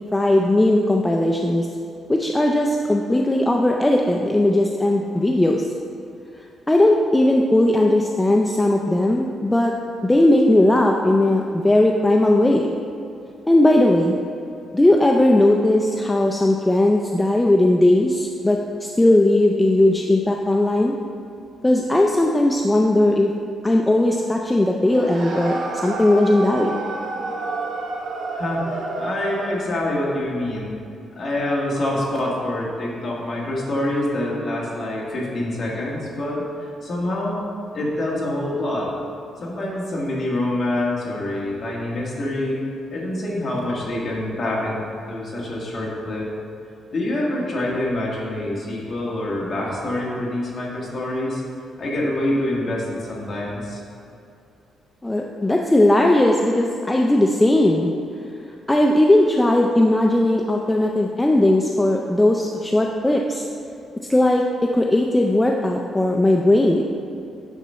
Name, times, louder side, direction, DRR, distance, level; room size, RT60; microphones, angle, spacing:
voice 1, 0.1-1.7 2.1-5.6 6.7-9.7 10.0-12.7 13.5-14.2 14.7-20.9 21.6-23.3 23.6-26.8 55.0-57.9 58.7-63.5 64.1-66.9, left 1 dB, 10° left, 1 dB, 0.4 m, -18 dB
sound 1, 24.8-29.7, right 2 dB, 80° right, 1.6 m, -29 dB
voice 2, 28.3-30.8 31.2-36.4 36.8-37.4 37.7-39.0 39.4-42.6 42.9-46.3 46.9-51.4 51.8-53.8, left 1 dB, 35° left, -4 dB, 1.8 m, -26 dB
9.2 x 4.0 x 5.6 m, 2.6 s
cardioid pair, 140°, 0 cm